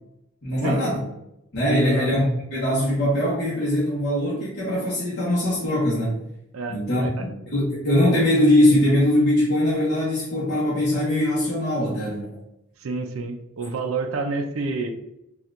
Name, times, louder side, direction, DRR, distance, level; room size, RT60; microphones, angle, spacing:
voice 1, 0.4-1.0 1.5-6.1 6.7-12.3, left 1 dB, 50° left, -8 dB, 0.9 m, -21 dB
voice 2, 1.7-2.1 6.5-7.3 12.8-14.9, right 3 dB, 80° right, 6 dB, 0.4 m, -29 dB
4.2 x 2.3 x 2.5 m, 0.85 s
head